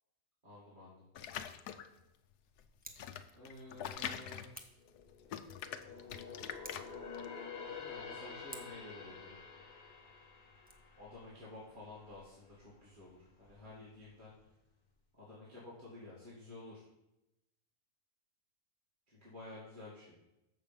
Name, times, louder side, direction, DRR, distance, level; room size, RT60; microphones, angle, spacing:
voice 1, 0.4-1.0 3.3-4.6 7.6-9.4 11.0-14.3 15.2-16.8 19.1-20.2, left 2 dB, 30° right, -7 dB, 2.1 m, -52 dB
sound 1, 1.1-2.0 2.6-5.0 5.3-7.3, left 9 dB, 85° left, 1.2 m, -44 dB
Scissors, 2.7-3.1 4.5-4.9 6.5-7.0 8.5-8.9 10.5-10.7, right 1 dB, 10° right, 0.5 m, -52 dB
sound 2, 4.7-12.3 12.6-12.9 13.4-14.1 14.4-14.5, left 5 dB, 35° left, 1.0 m, -49 dB
7.3 x 6.5 x 5.4 m, 0.91 s
omnidirectional pair, 1.6 m